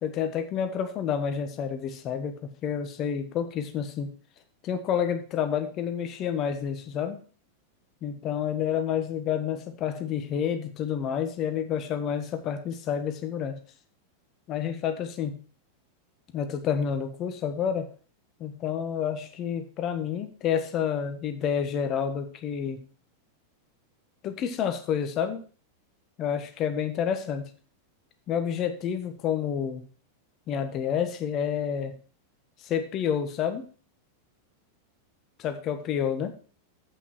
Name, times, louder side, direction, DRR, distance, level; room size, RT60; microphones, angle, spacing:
voice 1, 0.0-4.1 4.6-7.2 8.0-13.6 14.5-15.4 16.3-17.9 18.4-22.8 24.2-25.4 26.2-27.5 28.3-29.8 30.5-32.0 32.6-33.7 35.4-36.4, left 8 dB, 35° left, 7 dB, 1.4 m, -29 dB
8.1 x 6.0 x 6.2 m, 0.39 s
figure-of-eight pair, 90°, 0 cm